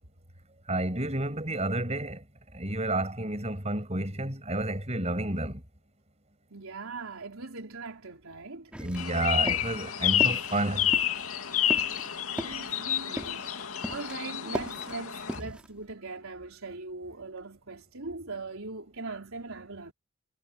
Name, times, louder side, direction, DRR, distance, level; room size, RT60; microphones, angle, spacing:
voice 1, 0.7-2.2 2.5-5.6 8.8-10.9 15.4-15.5, right 1 dB, 30° right, 6.6 m, -30 dB
voice 2, 6.5-8.7 12.3-13.4 13.9-19.9, right 3 dB, 75° right, 3.8 m, -40 dB
sound 1, 8.7-9.2 9.5-9.8 10.2-10.6 10.9-14.2 14.4-15.7, equal, 5° right, 3.1 m, -38 dB
sound 2, 9.0-15.4, left 10 dB, 85° left, 2.4 m, -29 dB
head